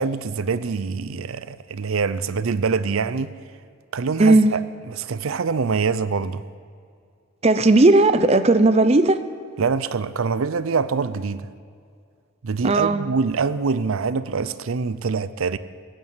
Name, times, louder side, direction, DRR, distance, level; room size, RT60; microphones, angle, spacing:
voice 1, 0.0-3.3 3.9-4.6 4.9-6.5 9.6-11.5 12.4-15.6, right 5 dB, 85° right, 0.5 m, -24 dB
voice 2, 4.2-4.5 7.4-9.2 12.6-13.1, right 2 dB, 30° right, 0.6 m, -16 dB
16.0 x 8.9 x 9.0 m
head